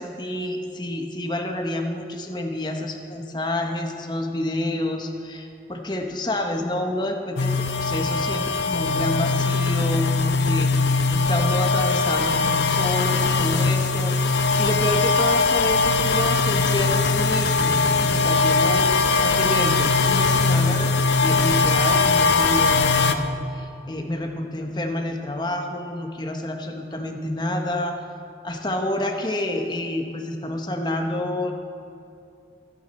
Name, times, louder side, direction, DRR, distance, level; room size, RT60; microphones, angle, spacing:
voice 1, 0.0-20.9 21.2-23.3 23.5-28.0 28.4-31.5, left 1 dB, 25° left, 3 dB, 1.1 m, -28 dB
sound 1, 7.4-23.1, left 4 dB, 80° left, 0.7 m, -20 dB
23.0 x 9.4 x 4.3 m, 2.5 s
head